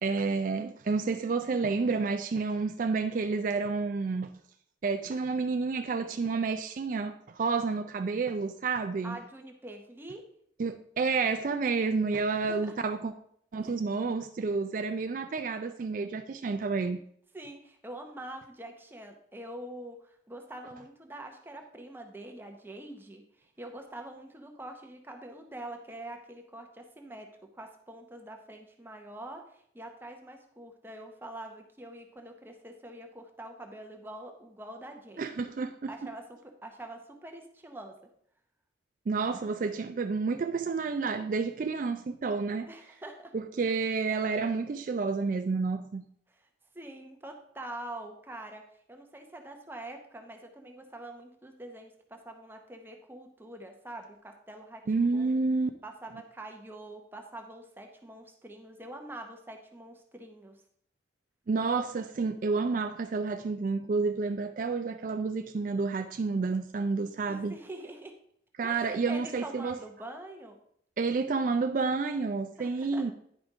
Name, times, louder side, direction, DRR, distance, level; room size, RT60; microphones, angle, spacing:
voice 1, 0.0-4.3 4.8-9.2 10.6-13.1 13.5-17.0 35.2-35.9 39.1-42.7 43.3-46.0 54.9-55.7 61.5-67.6 68.6-69.8 71.0-73.1, right 4 dB, 45° right, 0.3 m, -30 dB
voice 2, 9.0-10.2 12.3-12.8 13.6-13.7 17.3-27.3 27.5-35.5 35.9-37.9 42.6-43.3 46.3-46.5 46.7-48.6 48.9-55.4 55.8-60.6 67.3-68.2 68.6-70.6 72.6-73.1, right 1 dB, 10° right, 0.7 m, -45 dB
10.0 x 5.1 x 3.5 m
head